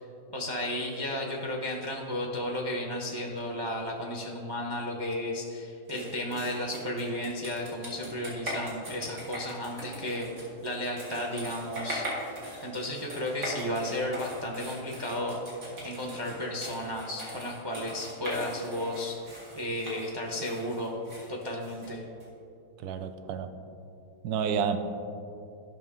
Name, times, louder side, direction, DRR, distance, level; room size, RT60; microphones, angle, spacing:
voice 1, 0.3-10.3 10.6-15.4 15.8-21.0 21.3-22.0, left 1 dB, 25° right, 0 dB, 0.6 m, -33 dB
sound 1, 5.9-22.3, equal, 55° right, 2.5 m, -40 dB
voice 2, 22.8-23.5 24.2-24.8, right 7 dB, 70° right, 8 dB, 1.1 m, -30 dB
13.0 x 6.0 x 3.7 m, 2.6 s
omnidirectional pair, 1.8 m